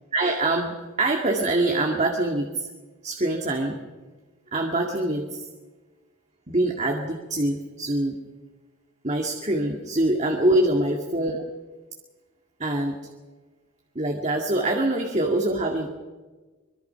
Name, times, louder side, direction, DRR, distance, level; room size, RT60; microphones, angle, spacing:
voice 1, 0.1-2.7 3.0-3.8 4.5-5.5 6.5-8.2 9.0-11.4 12.6-13.0 14.0-15.9, right 1 dB, 30° right, 2 dB, 2.1 m, -24 dB
25.5 x 23.5 x 5.8 m, 1.3 s
head